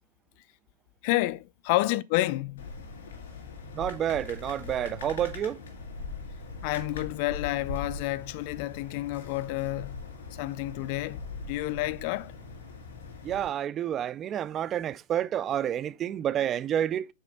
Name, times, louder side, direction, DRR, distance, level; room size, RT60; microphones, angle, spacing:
voice 1, 1.0-2.7 6.6-10.0 10.4-12.3, left 18 dB, 50° left, 0.4 m, -30 dB
sound 1, 2.6-13.5, left 4 dB, 85° left, 2.6 m, -41 dB
voice 2, 3.8-5.6 13.2-17.1, right 10 dB, 25° right, 0.3 m, -29 dB
6.0 x 4.3 x 3.9 m
supercardioid pair, 140°, 0 cm